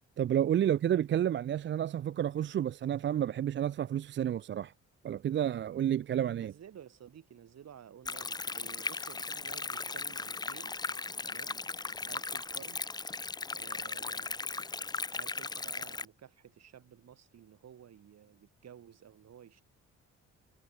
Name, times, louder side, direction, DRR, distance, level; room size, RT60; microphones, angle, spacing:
voice 1, 0.2-4.7 5.0-6.5, right 10 dB, 40° right, 0.4 m, -30 dB
voice 2, 6.4-10.8 11.3-11.6 12.0-12.8 13.5-14.4 15.1-19.6, right 9 dB, 60° right, 4.0 m, -53 dB
Stream, 8.1-16.1, left 3 dB, 15° left, 0.5 m, -37 dB
sound 1, 8.2-14.4, left 12 dB, 75° left, 3.8 m, -67 dB
cardioid pair, 90°, 30 cm